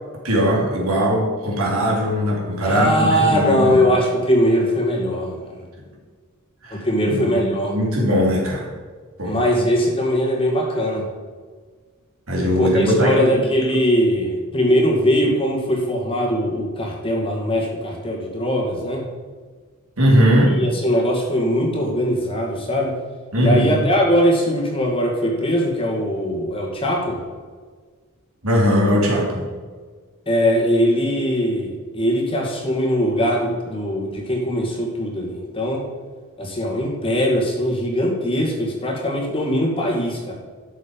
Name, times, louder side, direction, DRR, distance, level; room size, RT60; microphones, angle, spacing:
voice 1, 0.2-3.8 6.6-8.7 9.2-9.3 12.3-13.4 20.0-20.6 23.3-23.9 28.4-29.4, equal, 70° right, -3 dB, 3.3 m, -20 dB
voice 2, 2.6-5.4 6.7-7.7 9.2-11.1 12.4-19.0 20.5-23.0 23.4-27.2 30.3-35.8 36.4-40.3, equal, 25° left, 0 dB, 2.2 m, -21 dB
12.0 x 7.3 x 5.3 m, 1.5 s
head